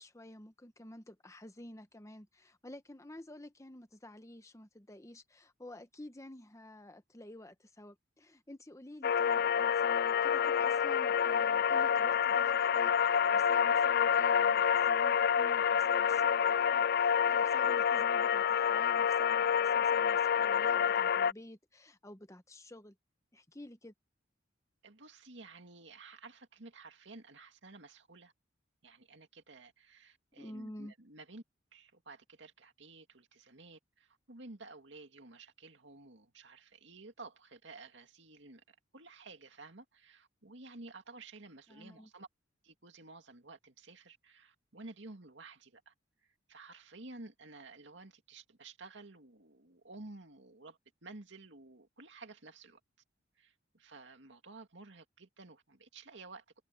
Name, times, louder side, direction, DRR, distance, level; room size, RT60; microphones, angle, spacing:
voice 1, 0.0-22.9 23.3-23.9 30.4-30.9 41.7-42.1, left 1 dB, 15° left, 1.1 m, -51 dB
sound 1, 9.0-21.3, left 7 dB, 50° left, 0.3 m, -28 dB
voice 2, 24.8-28.3 28.8-31.4 31.7-42.3 42.6-45.9 46.5-52.8 53.4-56.4, right 3 dB, 65° right, 2.5 m, -53 dB
head